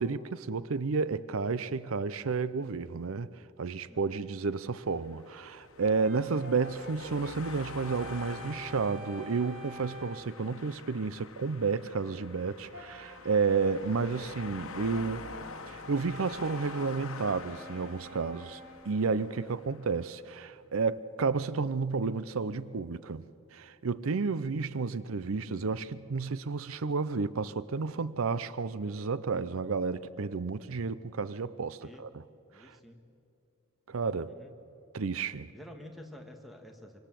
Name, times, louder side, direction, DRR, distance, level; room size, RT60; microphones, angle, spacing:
voice 1, 0.0-3.3 3.6-15.3 15.7-18.6 18.9-23.2 23.5-32.2 32.6-32.8 33.9-34.4 34.9-35.5, right 4 dB, 80° right, 0.6 m, -31 dB
voice 2, 3.9-4.2 31.8-32.0 32.5-33.0 34.2-34.5 35.5-37.0, left 1 dB, ahead, 1.9 m, -49 dB
sound 1, 4.6-20.0, left 4 dB, 90° left, 1.3 m, -47 dB
Brass instrument, 5.8-10.4 12.7-19.1, equal, 60° right, 4.2 m, -47 dB
25.0 x 25.0 x 7.6 m
head